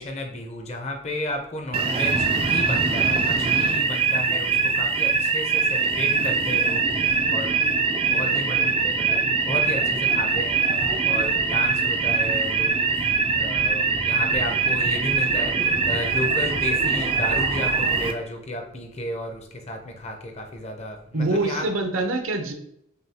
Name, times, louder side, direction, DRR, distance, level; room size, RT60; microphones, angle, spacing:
voice 1, 0.0-7.5 8.1-12.8 13.3-21.7, left 1 dB, 30° left, 3 dB, 0.6 m, -33 dB
sound 1, 1.7-18.1, right 4 dB, 25° right, 0.3 m, -22 dB
voice 2, 21.1-22.5, right 2 dB, 75° right, 5 dB, 0.7 m, -24 dB
6.5 x 2.3 x 2.8 m, 0.74 s
head